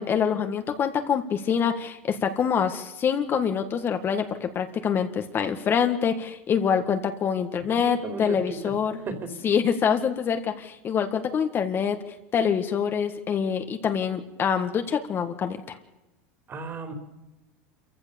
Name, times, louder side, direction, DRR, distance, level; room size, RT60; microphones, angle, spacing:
voice 1, 0.0-8.9 9.4-12.0 12.3-15.7, left 7 dB, 35° left, 7 dB, 1.7 m, -25 dB
voice 2, 7.6-8.7 9.1-9.3 16.5-16.9, right 3 dB, 30° right, 6 dB, 3.9 m, -35 dB
26.5 x 15.0 x 7.0 m, 1.0 s
supercardioid pair, 115°, 7 cm